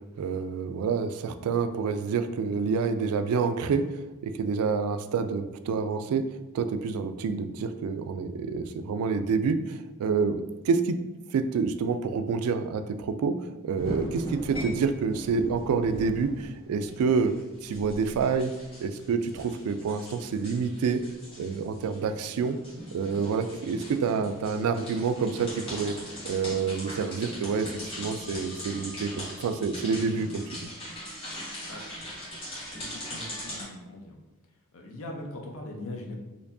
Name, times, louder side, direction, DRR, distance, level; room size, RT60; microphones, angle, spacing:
voice 1, 0.2-6.2 6.5-11.0 11.3-13.3 13.6-17.3 17.6-18.5 18.8-21.0 21.4-22.6 22.9-26.0 26.2-30.4, right 5 dB, 80° right, 11 dB, 0.3 m, -28 dB
sound 1, 13.7-33.6, equal, 25° left, 1.3 m, -40 dB
voice 2, 31.7-32.1 32.7-34.2 34.7-36.2, left 1 dB, 65° left, 1 dB, 0.7 m, -41 dB
4.3 x 2.6 x 2.6 m, 1.1 s
head